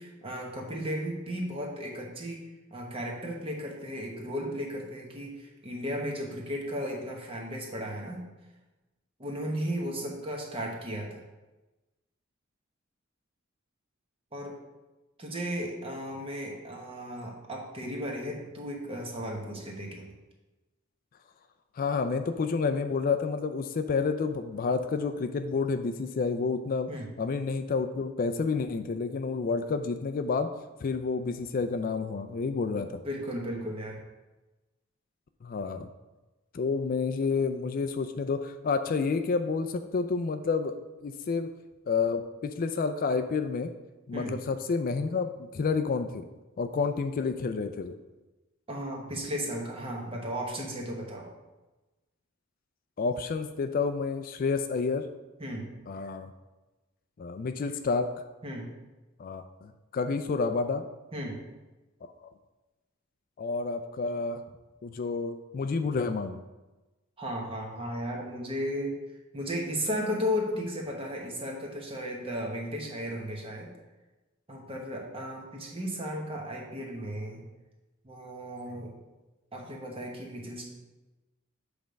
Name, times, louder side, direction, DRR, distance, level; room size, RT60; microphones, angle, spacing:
voice 1, 0.0-2.4 2.7-8.2 9.2-11.2 14.3-14.6 15.2-20.1 26.9-27.1 33.0-34.0 44.1-44.3 48.7-51.3 55.4-55.7 58.4-58.7 61.1-61.4 67.2-69.0 69.3-73.7 74.5-77.4 78.0-79.0 79.5-80.7, equal, 30° right, 0 dB, 1.2 m, -35 dB
voice 2, 21.8-26.9 27.2-30.5 30.8-33.0 35.4-35.9 36.5-40.8 41.0-41.5 41.9-43.7 44.1-46.3 46.6-47.9 53.0-55.1 55.9-56.3 57.2-58.1 59.2-60.8 62.0-62.1 63.4-64.4 64.8-66.4, left 4 dB, 45° left, 9 dB, 0.3 m, -29 dB
7.5 x 3.4 x 5.1 m, 1.1 s
head